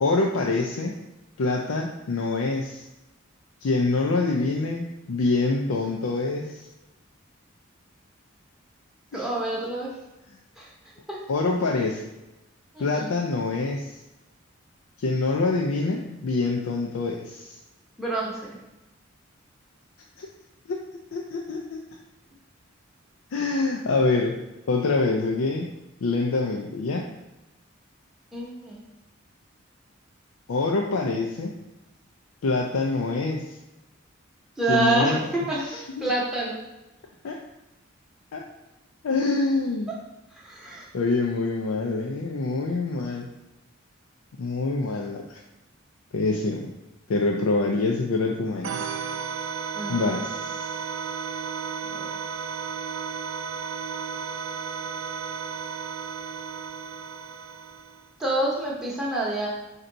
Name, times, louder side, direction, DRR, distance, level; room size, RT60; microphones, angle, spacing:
voice 1, 0.0-1.0 1.4-2.8 3.6-6.6 9.1-9.3 11.3-12.0 12.8-14.0 15.0-17.6 20.2-20.3 20.7-20.8 21.1-21.8 23.3-24.4 24.7-25.7 26.0-27.1 30.5-31.6 32.4-33.5 34.7-35.2 35.7-36.0 37.2-37.4 38.3-38.4 39.0-39.9 40.9-43.3 44.4-45.2 46.1-46.7 47.1-48.7 49.9-50.6, left 3 dB, 85° left, 0 dB, 0.4 m, -25 dB
voice 2, 9.1-10.0 10.6-10.7 11.1-11.2 12.7-13.1 18.0-18.6 28.3-28.8 34.6-36.6 40.3-40.9 49.7-50.2 51.9-52.1 58.2-59.5, right 2 dB, 5° right, -6 dB, 0.8 m, -27 dB
sound 1, 48.6-58.1, right 6 dB, 70° right, 0.4 m, -33 dB
4.4 x 2.8 x 3.8 m, 0.96 s
head